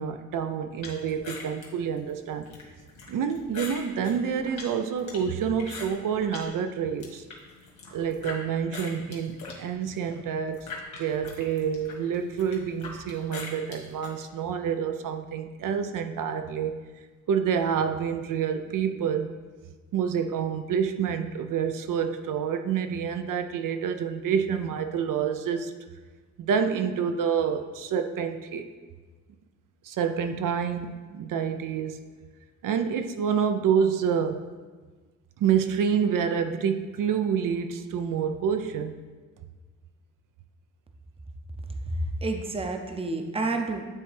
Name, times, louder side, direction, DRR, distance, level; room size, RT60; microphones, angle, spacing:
voice 1, 0.0-2.5 3.1-7.2 7.9-10.7 11.0-16.7 17.3-19.3 19.9-25.7 26.4-28.7 29.8-32.1 32.6-34.5 35.4-39.0, right 7 dB, 85° right, 8 dB, 0.5 m, -28 dB
sound 1, 0.8-6.5 6.9-8.4 8.7-14.1, left 3 dB, 60° left, 1.5 m, -42 dB
voice 2, 41.8-43.8, right 2 dB, 20° right, 5 dB, 0.5 m, -29 dB
9.6 x 3.3 x 3.3 m, 1.4 s
wide cardioid pair, 120°, 31 cm